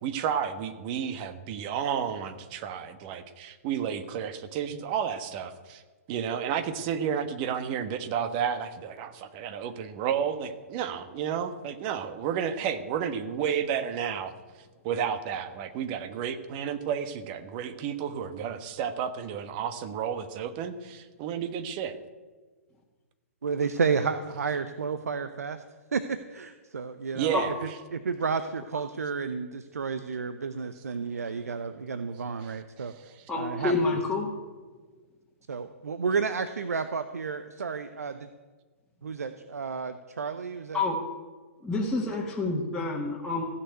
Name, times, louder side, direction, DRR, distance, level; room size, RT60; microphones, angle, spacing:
voice 1, 0.0-5.8 6.1-14.3 14.8-22.0 27.1-27.5 32.4-33.2, right 8 dB, 40° right, 11 dB, 1.2 m, -31 dB
voice 2, 23.4-25.6 25.9-27.4 27.9-32.9 33.4-34.0 35.5-38.3 39.0-40.8, right 5 dB, 85° right, 11 dB, 0.7 m, -31 dB
voice 3, 33.3-34.3 40.7-41.0 41.6-43.4, left 3 dB, 5° left, -6 dB, 1.9 m, -28 dB
15.5 x 6.8 x 9.2 m, 1.4 s
hypercardioid pair, 130°, 8 cm